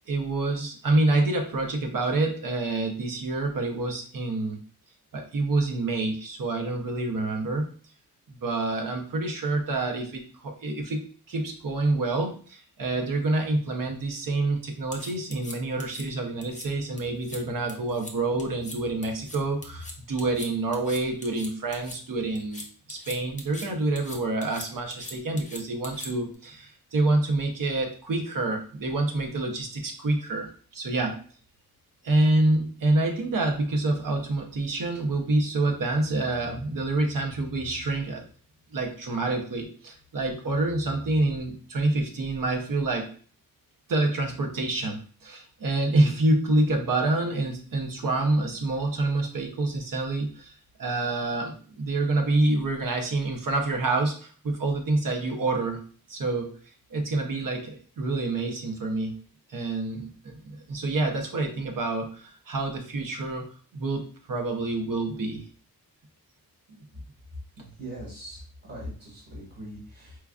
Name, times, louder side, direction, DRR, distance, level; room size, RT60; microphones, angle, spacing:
voice 1, 0.1-4.6 5.1-7.7 8.3-31.2 32.0-38.2 38.7-43.1 43.9-50.5 50.8-55.8 56.1-56.6 56.9-59.1 59.5-65.5 66.7-66.8, right 2 dB, 65° right, 3 dB, 0.8 m, -27 dB
sound 1, 14.9-16.0 16.4-16.7 17.0-17.4 17.7-18.1 18.4-18.8 19.0-22.0 22.3-23.7 24.0-26.3, left 2 dB, 20° left, 0.5 m, -41 dB
voice 2, 67.8-70.2, right 1 dB, 40° right, -7 dB, 1.7 m, -41 dB
4.6 x 2.4 x 2.3 m, 0.42 s
wide cardioid pair, 145°, 36 cm